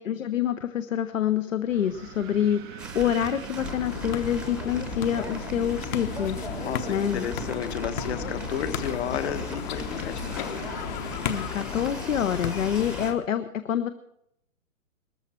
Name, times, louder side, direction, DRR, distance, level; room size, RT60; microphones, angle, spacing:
voice 1, 0.0-6.4 6.9-7.2 11.2-13.9, left 9 dB, 65° left, 11 dB, 0.9 m, -27 dB
Wind, 1.7-12.0, right 9 dB, 20° right, 0.5 m, -41 dB
sound 1, 2.8-13.1, right 2 dB, ahead, 0.9 m, -41 dB
sound 2, 3.6-13.2, left 8 dB, 35° left, 1.0 m, -34 dB
voice 2, 6.5-10.4, left 9 dB, 50° left, 10 dB, 1.3 m, -32 dB
19.0 x 14.0 x 4.4 m, 0.76 s
figure-of-eight pair, 125°, 41 cm